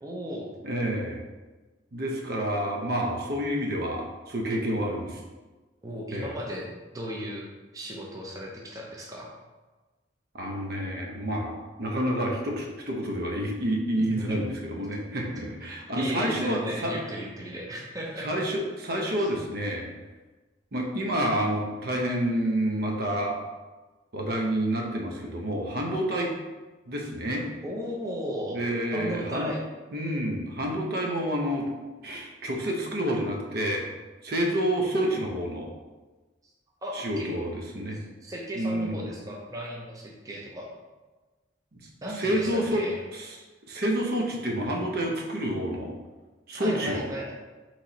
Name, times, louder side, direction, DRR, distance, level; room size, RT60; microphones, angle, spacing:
voice 1, 0.0-0.6 5.8-7.5 7.7-9.3 14.0-14.4 16.0-18.3 19.2-19.3 27.6-28.6 28.9-29.6 36.8-37.4 38.2-40.7 42.0-43.0 46.6-47.3, equal, 20° right, -2 dB, 0.6 m, -35 dB
voice 2, 0.6-1.2 1.9-5.2 6.1-6.3 10.3-16.9 18.2-19.9 20.7-23.4 24.1-26.3 26.9-27.5 28.5-29.5 29.9-31.7 32.0-33.8 34.2-35.7 36.9-38.0 38.5-39.1 41.8-42.9 43.1-43.4 43.7-45.9 46.5-47.1, equal, 60° right, 0 dB, 0.7 m, -29 dB
4.2 x 3.1 x 3.9 m, 1.2 s
head